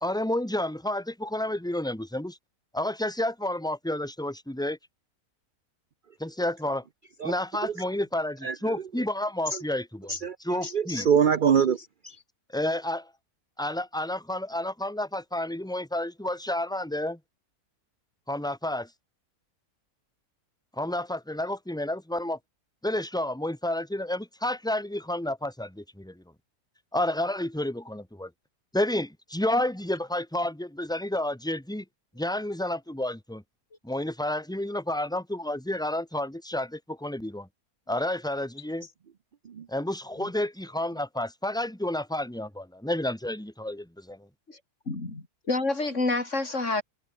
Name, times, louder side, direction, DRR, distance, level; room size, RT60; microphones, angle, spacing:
voice 1, 0.0-2.4 2.7-4.8 6.2-6.8 7.2-10.1 10.4-11.1 12.5-13.1 13.6-17.2 18.3-18.9 20.8-22.4 22.8-26.2 26.9-28.3 28.7-31.8 32.1-33.4 33.8-37.5 37.9-38.9 39.7-43.8, left 1 dB, ahead, 3.0 m, -30 dB
voice 2, 8.4-8.8 9.5-9.6 10.1-12.2 39.4-39.7, right 7 dB, 45° right, 0.7 m, -25 dB
voice 3, 44.9-46.8, left 2 dB, 50° left, 3.9 m, -28 dB
omnidirectional pair, 1.6 m